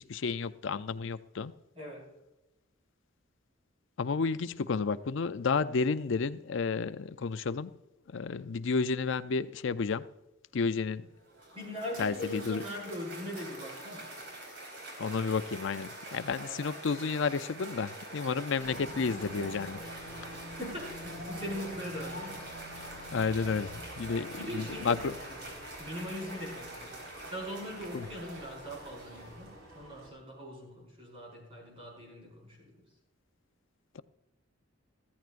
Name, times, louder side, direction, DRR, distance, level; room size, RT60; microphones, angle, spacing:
voice 1, 0.0-1.5 4.0-7.7 8.1-10.0 10.5-11.1 12.0-12.6 15.0-19.8 23.1-25.1 27.9-28.1 34.0-34.1, left 5 dB, 65° left, 0.5 m, -31 dB
voice 2, 1.7-2.1 11.5-14.1 16.4-16.6 20.2-22.5 24.1-27.0 27.2-32.8, left 1 dB, 30° right, 5.2 m, -41 dB
Cheering / Applause, 11.1-29.7, right 1 dB, 60° right, 4.4 m, -45 dB
sound 1, 18.6-25.3, left 1 dB, 5° right, 4.2 m, -50 dB
sound 2, 18.6-30.1, right 1 dB, 85° right, 5.0 m, -51 dB
14.5 x 14.0 x 2.5 m
head